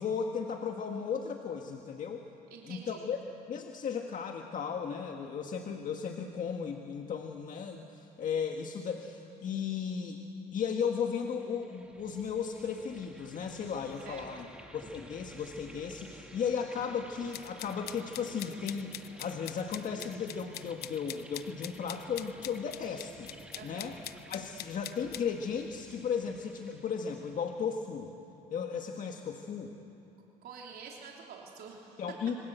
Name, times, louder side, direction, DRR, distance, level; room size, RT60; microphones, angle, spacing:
voice 1, 0.0-2.3 2.6-3.2 3.5-10.2 10.5-14.5 14.7-23.3 23.6-24.0 24.3-28.1 28.5-29.7 32.0-32.4, left 6 dB, 50° left, 3 dB, 1.7 m, -35 dB
voice 2, 2.5-3.1 14.0-14.6 23.5-24.0 30.4-32.0, right 6 dB, 65° right, -1 dB, 3.4 m, -48 dB
sound 1, 11.2-27.9, right 1 dB, 5° right, 2.0 m, -53 dB
sound 2, 17.3-25.2, left 13 dB, 70° left, 0.8 m, -44 dB
27.5 x 24.5 x 8.2 m, 2.9 s
cardioid pair, 110°, 17 cm